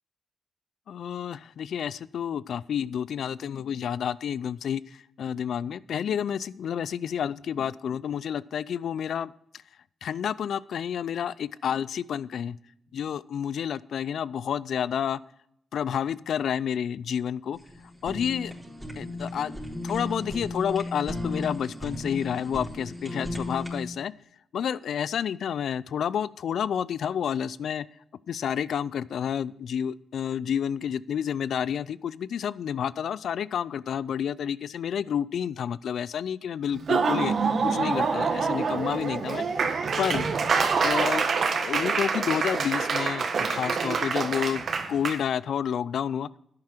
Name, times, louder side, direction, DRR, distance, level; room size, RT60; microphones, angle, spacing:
voice 1, 0.9-9.3 10.0-12.6 12.9-15.2 15.7-17.6 18.0-18.5 19.0-24.1 24.5-27.9 28.3-37.3 37.6-39.4 40.0-40.3 40.8-41.3 41.6-44.6 44.9-46.3, left 8 dB, 75° left, 20 dB, 0.4 m, -30 dB
Fire, 17.5-23.8, left 1 dB, 5° right, 4.2 m, -35 dB
Laughter / Applause, 36.7-45.2, right 5 dB, 60° right, 1.5 m, -26 dB
11.5 x 9.6 x 4.4 m, 0.74 s
supercardioid pair, 55°, 0 cm